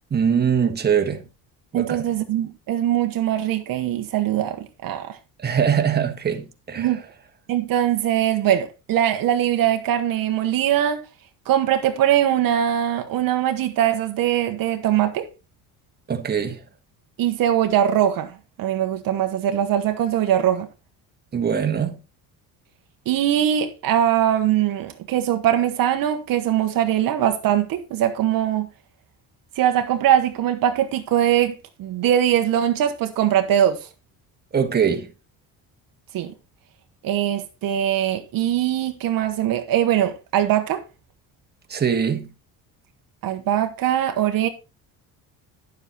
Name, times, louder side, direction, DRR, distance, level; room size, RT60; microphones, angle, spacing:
voice 1, 0.1-1.2 1.7-2.1 5.4-7.0 16.1-16.6 21.3-22.0 34.5-35.1 41.7-42.3, right 7 dB, 25° right, 1.6 m, -22 dB
voice 2, 1.7-5.2 6.8-7.0 7.5-11.0 11.5-15.3 17.2-18.3 18.6-20.7 23.1-28.7 29.6-33.9 36.1-36.3 37.0-40.8 43.2-44.5, right 11 dB, 60° right, 1.2 m, -21 dB
11.0 x 7.4 x 4.1 m
cardioid pair, 145°, 38 cm